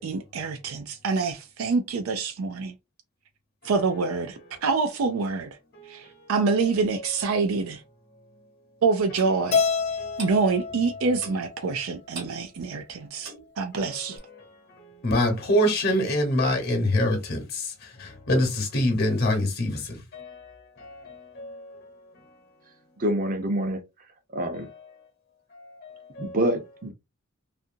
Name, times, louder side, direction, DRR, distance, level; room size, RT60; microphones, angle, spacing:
voice 1, 0.0-2.7 3.6-5.6 5.9-7.8 8.8-9.6 10.2-14.2, right 4 dB, 90° right, 0.4 m, -26 dB
Clock, 9.2-9.4 10.2-10.4 11.2-11.5 12.1-12.4 13.2-13.5 14.2-14.3, right 4 dB, 60° right, 1.2 m, -40 dB
Keyboard (musical), 9.5-11.9, left 5 dB, 30° left, 0.4 m, -28 dB
voice 2, 15.0-17.4 18.3-19.8, left 1 dB, 50° left, 1.0 m, -23 dB
voice 3, 23.0-23.8 24.3-24.7 26.2-26.9, right 1 dB, 40° right, 0.6 m, -26 dB
2.7 x 2.5 x 2.5 m
head